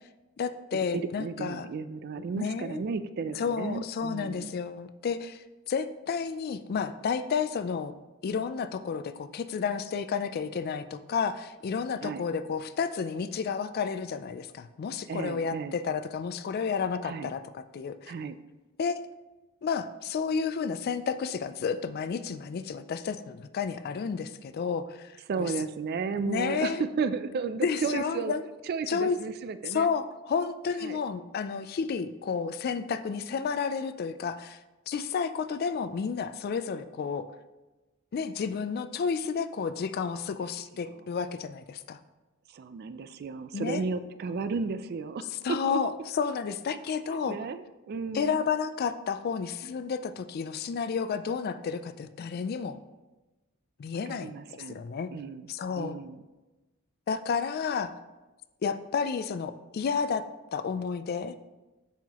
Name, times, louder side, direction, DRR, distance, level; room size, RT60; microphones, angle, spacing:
voice 1, 0.4-1.7 2.4-2.8 3.4-7.9 8.2-18.1 18.8-19.0 19.6-25.5 26.3-26.8 27.6-28.5 28.9-29.2 29.7-34.6 34.9-37.3 38.1-42.0 43.5-43.9 45.4-47.4 48.1-52.8 53.8-55.1 55.5-56.0 57.1-57.9 58.6-60.2 60.5-61.3, left 6 dB, 45° left, 12 dB, 0.3 m, -31 dB
voice 2, 0.9-4.5 12.0-12.2 15.1-15.8 17.0-17.3 18.1-18.4 25.3-28.3 28.7-29.9 30.8-31.0 42.5-45.8 47.1-48.4 54.1-54.8 55.1-55.5 55.8-56.2, right 5 dB, 50° right, 12 dB, 0.3 m, -34 dB
7.1 x 5.7 x 2.9 m, 1.1 s
head